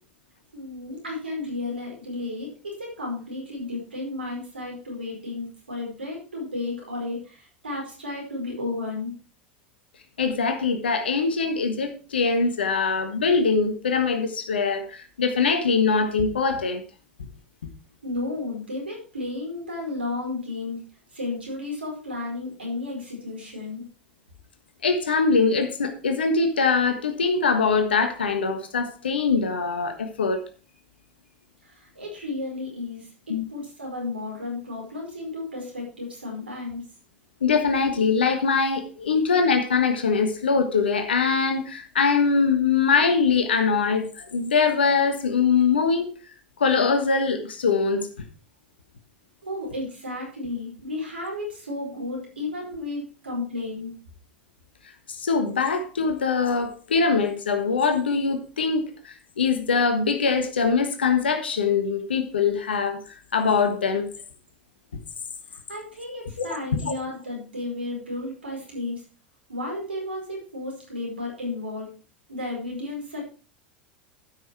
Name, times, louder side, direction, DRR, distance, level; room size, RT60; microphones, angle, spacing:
voice 1, 0.5-9.1 18.0-20.8 21.1-23.8 31.6-36.8 49.4-53.9 65.7-69.0 69.5-71.9 72.3-73.2, left 2 dB, 90° right, 4.8 m, -33 dB
voice 2, 10.2-16.8 24.8-30.4 33.3-33.4 37.4-46.1 46.6-48.1 55.2-63.0 63.3-64.1 66.9-67.0, left 5 dB, 85° left, 1.4 m, -22 dB
12.5 x 6.0 x 4.6 m
hypercardioid pair, 85°, 6 cm